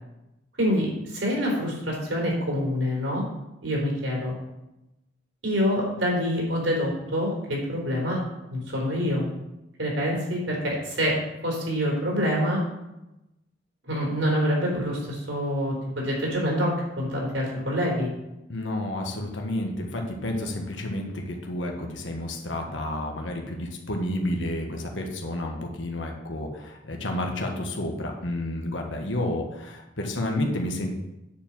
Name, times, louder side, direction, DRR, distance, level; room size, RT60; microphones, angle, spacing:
voice 1, 0.6-3.2 3.6-4.3 5.4-8.2 8.5-9.3 9.8-11.2 11.4-12.6 13.9-18.1, equal, 85° right, -2 dB, 4.0 m, -26 dB
voice 2, 18.5-30.9, left 1 dB, 90° left, 2 dB, 1.5 m, -30 dB
9.6 x 4.7 x 7.5 m, 0.94 s
head